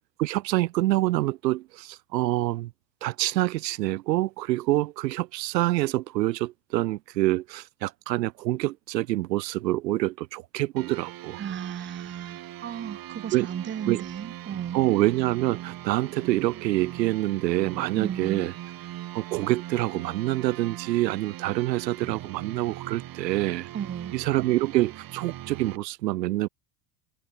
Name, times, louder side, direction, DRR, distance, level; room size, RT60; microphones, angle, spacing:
voice 1, 0.2-2.7 3.0-11.4 13.3-13.5 13.9-14.0 14.7-18.5 19.1-23.7 24.1-26.5, right 17 dB, 90° right, 1.7 m, -26 dB
sound 1, 10.8-25.8, right 14 dB, 45° right, 2.2 m, -40 dB
voice 2, 11.4-14.8 18.0-18.4 23.7-24.1, right 8 dB, 25° right, 1.0 m, -35 dB
supercardioid pair, 95°, 49 cm